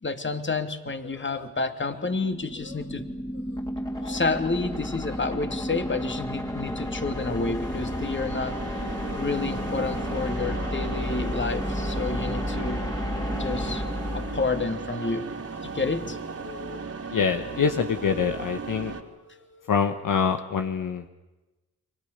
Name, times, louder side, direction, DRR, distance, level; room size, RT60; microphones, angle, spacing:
voice 1, 0.0-3.1 4.0-8.6 9.1-12.8 13.4-13.8 14.1-15.3 15.6-16.2, left 3 dB, 30° left, 8 dB, 2.7 m, -29 dB
sound 1, 1.0-2.1 2.5-2.9 3.3-3.6 3.9-4.2 4.6-5.4 5.7-9.2 9.5-10.8 11.1-11.5 11.8-20.0, left 7 dB, 85° left, 3.3 m, -51 dB
sound 2, 1.9-15.1, left 1 dB, 10° left, 3.2 m, -32 dB
sound 3, 6.4-19.0, right 4 dB, 40° right, 3.2 m, -37 dB
voice 2, 17.1-18.9 19.7-21.1, left 6 dB, 55° left, 6 dB, 1.5 m, -25 dB
29.0 x 24.0 x 6.8 m, 1.1 s
hypercardioid pair, 45°, 38 cm